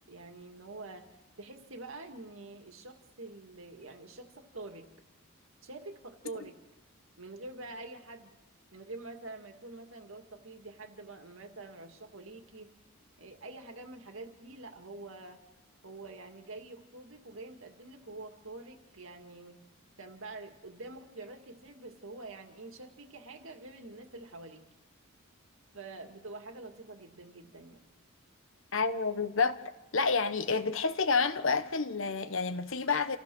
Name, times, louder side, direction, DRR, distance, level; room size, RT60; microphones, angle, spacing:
voice 1, 0.1-1.1 1.4-4.9 5.6-6.6 7.2-8.3 8.7-12.7 13.2-15.4 15.8-19.6 20.0-24.6 25.7-27.8, right 2 dB, 65° right, 2.1 m, -46 dB
voice 2, 28.7-29.6 29.9-33.2, left 4 dB, 65° left, 1.1 m, -29 dB
28.5 x 15.0 x 6.2 m
head